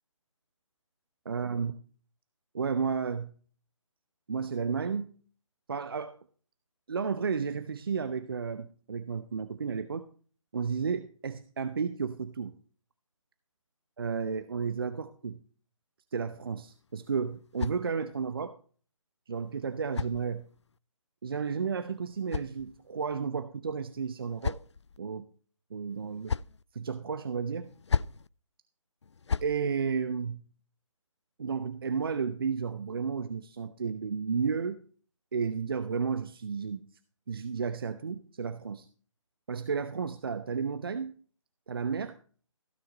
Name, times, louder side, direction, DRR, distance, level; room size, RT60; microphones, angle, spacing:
voice 1, 1.2-1.7 2.5-3.3 4.3-5.1 5.7-6.2 6.9-10.1 10.5-12.5 14.0-15.4 16.1-18.6 19.3-20.5 21.2-24.6 25.0-25.2 25.7-26.3 26.7-27.7 29.4-30.5 31.4-34.8 35.3-36.9 37.3-38.9 39.5-41.1 41.7-42.2, right 5 dB, 45° right, 11 dB, 0.8 m, -32 dB
sound 1, 16.7-18.3 19.3-20.8 21.8-23.1 23.9-25.0 25.9-26.6 27.6-28.3 29.0-29.6, left 5 dB, 60° left, 0.4 m, -36 dB
16.0 x 6.6 x 4.2 m, 0.42 s
figure-of-eight pair, 145°, 17 cm